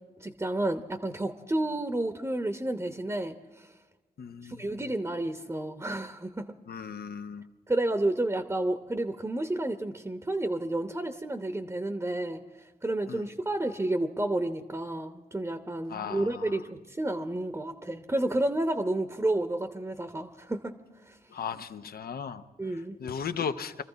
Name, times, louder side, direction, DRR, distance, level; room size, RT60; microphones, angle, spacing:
voice 1, 0.2-3.7 4.4-6.5 7.7-12.4 12.8-20.8 21.1-21.2 22.6-23.0, right 1 dB, 15° right, 7 dB, 0.8 m, -31 dB
voice 2, 4.2-4.8 6.7-7.5 13.1-13.3 15.9-16.6 21.3-22.4 23.0-23.8, left 7 dB, 75° left, 10 dB, 0.7 m, -36 dB
24.0 x 14.0 x 4.0 m, 1.2 s
cardioid pair, 70°, 16 cm